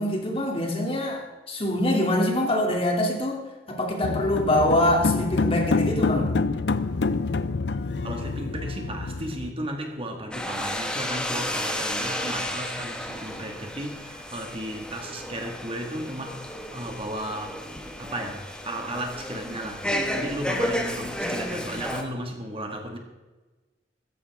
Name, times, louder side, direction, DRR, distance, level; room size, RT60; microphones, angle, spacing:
voice 1, 0.0-3.4 3.7-6.3, left 1 dB, 35° left, 0 dB, 2.8 m, -24 dB
sound 1, 4.0-9.5, left 3 dB, 70° left, 0.6 m, -26 dB
voice 2, 8.0-17.6 18.0-23.0, right 1 dB, 30° right, 3 dB, 1.9 m, -35 dB
sound 2, 10.3-22.0, left 1 dB, 5° left, 1.5 m, -32 dB
15.5 x 14.0 x 3.6 m, 1.2 s
head